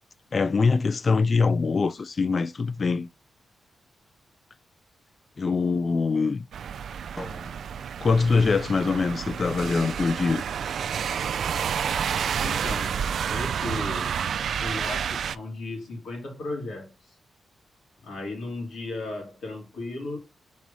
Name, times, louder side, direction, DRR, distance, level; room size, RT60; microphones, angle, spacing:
voice 1, 0.3-3.1 5.4-6.5 8.0-10.4, left 4 dB, 40° left, 0.3 m, -23 dB
sound 1, 6.5-15.3, right 7 dB, 75° right, 0.3 m, -29 dB
Drum, 7.2-9.1, equal, 5° left, 1.5 m, -44 dB
voice 2, 12.3-13.0 13.3-14.1 14.6-17.2 18.0-20.2, left 2 dB, 80° left, 3.0 m, -35 dB
4.7 x 4.0 x 5.4 m
cardioid pair, 105°, 0 cm